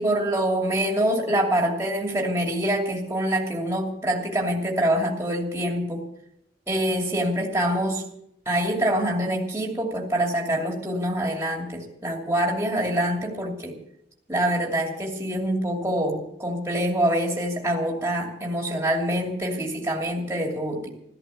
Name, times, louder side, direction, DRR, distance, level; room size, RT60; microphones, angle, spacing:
voice 1, 0.0-6.1 6.7-8.0 8.5-13.8 14.3-20.9, right 1 dB, 15° right, 0 dB, 2.7 m, -25 dB
14.0 x 13.5 x 7.0 m, 0.77 s
head